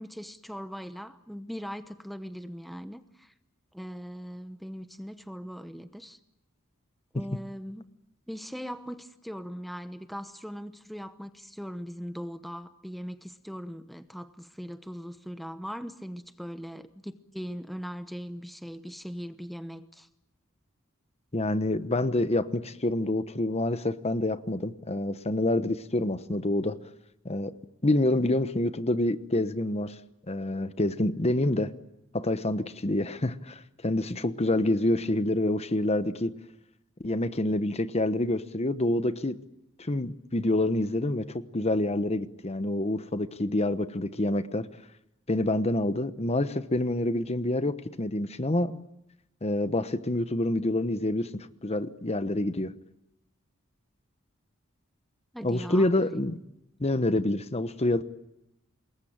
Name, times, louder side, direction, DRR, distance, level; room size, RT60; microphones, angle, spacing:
voice 1, 0.0-3.3 3.7-6.2 7.1-7.9 8.3-20.1 55.3-55.9, equal, ahead, 10 dB, 0.9 m, -40 dB
voice 2, 21.3-26.8 27.2-27.5 27.8-30.0 30.3-31.7 32.1-36.3 37.0-39.4 39.8-44.7 45.3-48.8 49.4-52.7 55.4-56.4 56.8-58.0, left 1 dB, 30° left, 13 dB, 1.1 m, -27 dB
27.0 x 21.5 x 8.9 m, 0.85 s
head